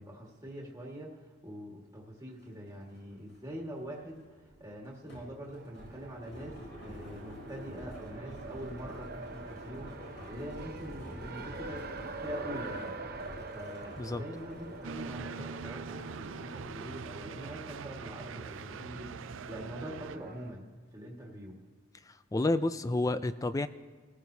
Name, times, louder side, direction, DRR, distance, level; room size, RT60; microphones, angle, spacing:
voice 1, 0.0-4.2 4.6-11.9 12.2-12.9 13.5-20.7 20.9-21.6, equal, 15° right, -2 dB, 1.7 m, -44 dB
sound 1, 2.4-2.5 2.8-17.6, equal, 60° left, 4.7 m, -48 dB
Race car auto racing, 5.5-20.5, right 3 dB, 50° right, 0.9 m, -46 dB
sound 2, 14.8-20.2, right 6 dB, 65° right, 0.4 m, -43 dB
voice 2, 22.3-23.7, left 2 dB, 15° left, 12 dB, 0.3 m, -29 dB
24.5 x 14.5 x 2.8 m, 1.4 s
head